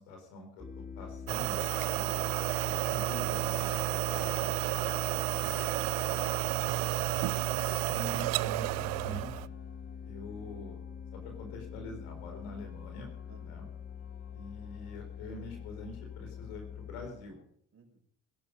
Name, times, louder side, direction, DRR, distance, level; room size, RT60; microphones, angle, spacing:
voice 1, 0.0-2.2 2.5-4.9 7.9-9.5 10.0-10.8 11.1-13.1 13.4-13.7 14.3-17.4, left 2 dB, 85° left, 4 dB, 4.6 m, -46 dB
sound 1, 0.6-17.1, left 6 dB, 25° left, 1.9 m, -44 dB
sound 2, 1.3-9.5, right 23 dB, 80° right, 0.5 m, -31 dB
sound 3, 6.8-17.4, left 4 dB, 45° left, 2.9 m, -61 dB
voice 2, 13.3-13.8 17.7-18.0, right 4 dB, 40° right, 3 dB, 5.6 m, -60 dB
20.5 x 11.5 x 5.5 m, 0.64 s
hypercardioid pair, 60°, 35 cm